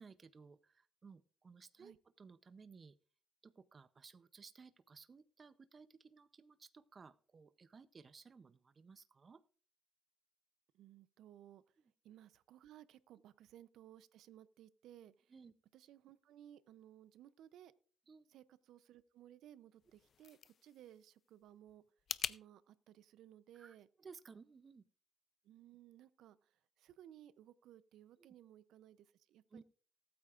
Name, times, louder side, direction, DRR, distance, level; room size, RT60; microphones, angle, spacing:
voice 1, 0.0-3.0 3.4-9.4 15.3-15.5 18.1-18.3 23.5-24.8 28.2-28.3 29.5-29.6, right 5 dB, 40° right, 13 dB, 0.6 m, -58 dB
voice 2, 10.7-15.3 15.7-17.7 18.3-21.8 22.3-23.9 25.4-29.6, right 11 dB, 85° right, 17 dB, 0.5 m, -60 dB
sound 1, 19.8-22.4, left 8 dB, 55° left, 0.4 m, -45 dB
19.5 x 8.6 x 2.4 m, 0.44 s
cardioid pair, 90°, 0 cm